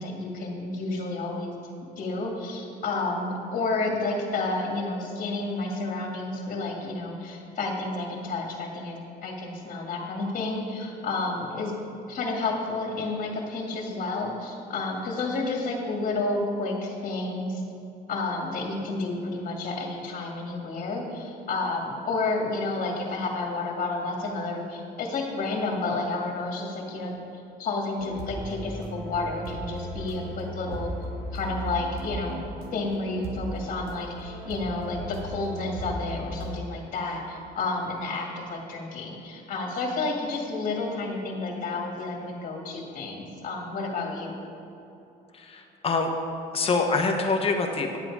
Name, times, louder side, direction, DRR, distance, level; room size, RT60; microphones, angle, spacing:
voice 1, 0.0-1.5 2.0-11.8 12.1-17.6 18.1-30.9 31.3-32.4 32.7-44.4, left 3 dB, 50° left, 0 dB, 2.0 m, -30 dB
sound 1, 28.0-36.6, right 1 dB, 65° right, 1.5 m, -36 dB
voice 2, 45.3-46.1 46.5-48.0, left 4 dB, 35° left, 3 dB, 1.2 m, -25 dB
10.5 x 7.8 x 4.8 m, 2.9 s
cardioid pair, 110°, 17 cm